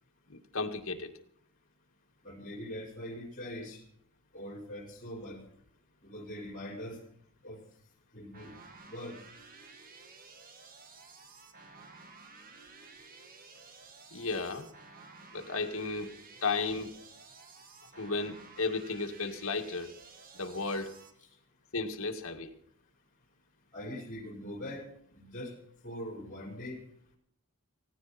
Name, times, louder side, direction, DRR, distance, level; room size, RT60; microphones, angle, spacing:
voice 1, 0.3-1.1 14.1-14.7 15.3-16.1 16.4-16.9 18.0-19.9 20.3-20.9 21.7-22.5, left 3 dB, 65° left, 4 dB, 2.0 m, -34 dB
voice 2, 2.2-3.8 4.3-5.4 6.0-7.0 7.4-7.6 8.1-8.6 8.8-9.2 23.7-24.8 25.1-25.6 25.8-26.8, left 1 dB, 40° left, 3 dB, 5.0 m, -42 dB
sound 1, 8.3-21.1, right 4 dB, 40° right, 2.0 m, -53 dB
17.5 x 17.0 x 4.3 m, 0.68 s
head